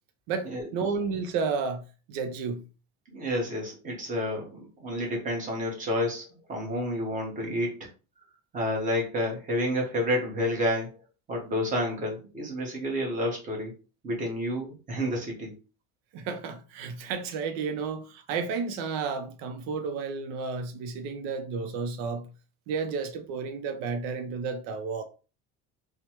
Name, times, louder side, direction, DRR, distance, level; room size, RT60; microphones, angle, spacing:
voice 1, 0.3-2.6 16.1-22.3 22.7-25.0, right 5 dB, 90° right, 0.5 m, -32 dB
voice 2, 3.1-7.9 8.5-11.0 11.3-13.7 14.0-15.5, equal, 25° right, 1.0 m, -30 dB
3.1 x 2.1 x 2.9 m
cardioid pair, 150°, 29 cm